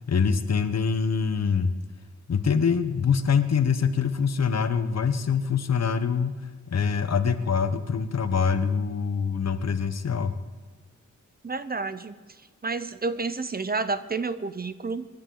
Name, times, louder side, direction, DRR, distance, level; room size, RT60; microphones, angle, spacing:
voice 1, 0.1-1.7 2.3-6.3 6.7-10.4, left 6 dB, 60° left, 10 dB, 1.0 m, -24 dB
voice 2, 11.4-12.2 12.6-15.1, right 4 dB, 30° right, 12 dB, 0.7 m, -30 dB
26.5 x 11.0 x 3.9 m, 1.4 s
wide cardioid pair, 120°, 30 cm